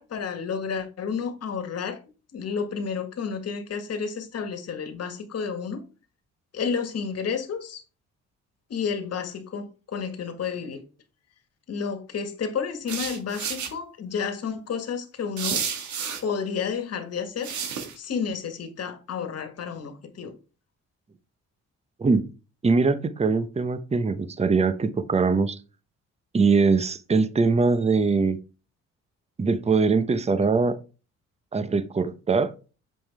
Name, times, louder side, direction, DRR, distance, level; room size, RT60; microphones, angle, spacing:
voice 1, 0.0-2.0 2.3-5.8 6.5-7.8 8.7-10.8 11.7-15.6 16.2-17.5 17.9-20.3, left 6 dB, 55° left, 1.6 m, -31 dB
sound 1, 12.9-13.7 15.4-16.2 17.4-17.9, right 7 dB, 70° right, 1.8 m, -30 dB
voice 2, 22.6-25.6 26.3-28.4 29.4-30.8 31.5-32.5, right 4 dB, 20° right, 0.8 m, -22 dB
7.4 x 5.4 x 3.4 m
cardioid pair, 90°, 30 cm